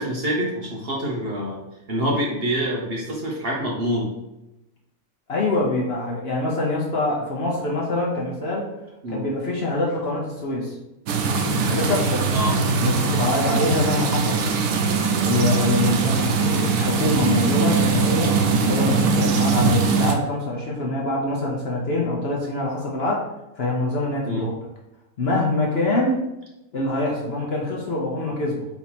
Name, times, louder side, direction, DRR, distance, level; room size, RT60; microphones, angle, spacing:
voice 1, 0.0-1.6 1.9-4.1 9.0-9.2 12.3-12.5 24.3-24.5, equal, 50° right, -2 dB, 0.9 m, -26 dB
voice 2, 5.3-8.7 9.1-10.8 11.6-12.3 12.8-14.4 15.2-18.4 18.7-23.2 23.6-24.5 25.2-26.2 26.7-28.7, left 2 dB, 50° left, -2 dB, 0.8 m, -24 dB
sound 1, 11.1-20.1, right 4 dB, 90° right, 1.2 m, -21 dB
4.6 x 2.8 x 4.2 m, 0.95 s
omnidirectional pair, 1.6 m